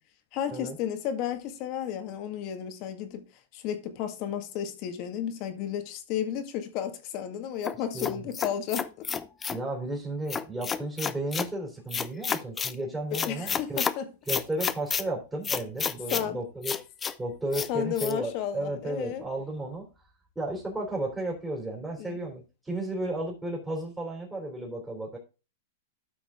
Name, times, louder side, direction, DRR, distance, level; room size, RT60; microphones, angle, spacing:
voice 1, 0.3-3.2 3.5-9.1 13.1-14.1 16.1-16.4 17.7-19.2 22.0-22.2, left 9 dB, 45° left, 1.9 m, -33 dB
sound 1, 7.6-9.6 10.3-11.5 11.9-12.7 13.1-13.9 14.3-15.0 15.4-16.3 16.6-17.1 17.5-17.7 18.0-18.1, left 6 dB, 20° left, 0.6 m, -30 dB
voice 2, 9.5-13.8 14.3-16.7 17.2-19.9 20.4-25.2, right 1 dB, 10° right, 3.6 m, -33 dB
13.0 x 5.9 x 3.7 m
hypercardioid pair, 130°, 0 cm